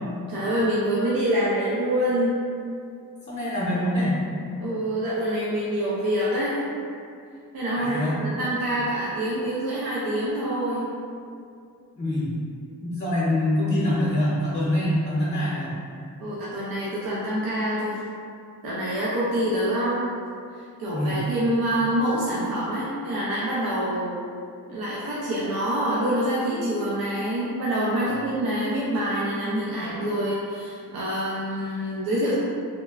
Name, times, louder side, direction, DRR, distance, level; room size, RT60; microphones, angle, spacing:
voice 1, 0.3-2.4 4.6-6.6 7.5-10.9 16.2-18.0 18.6-20.1 20.6-24.2 24.7-32.3, right 1 dB, 70° right, -7 dB, 0.5 m, -26 dB
voice 2, 3.3-4.2 7.7-8.2 12.0-12.3 12.8-15.7 20.9-21.2 28.0-28.3, left 1 dB, 30° left, -8 dB, 0.7 m, -25 dB
2.9 x 2.1 x 2.3 m, 2.4 s
cardioid pair, 55°, 37 cm